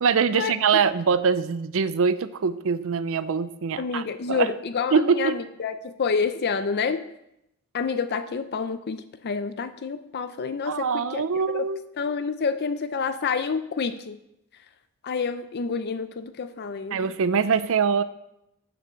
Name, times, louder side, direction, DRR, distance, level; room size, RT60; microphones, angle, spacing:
voice 1, 0.0-4.5 4.9-5.4 10.6-11.8 16.9-18.0, right 6 dB, 65° right, 14 dB, 0.5 m, -23 dB
voice 2, 3.8-7.0 7.7-11.2 11.5-11.6 12.0-14.2 15.0-17.1, left 5 dB, 50° left, 11 dB, 0.5 m, -28 dB
8.8 x 6.9 x 6.3 m, 0.83 s
head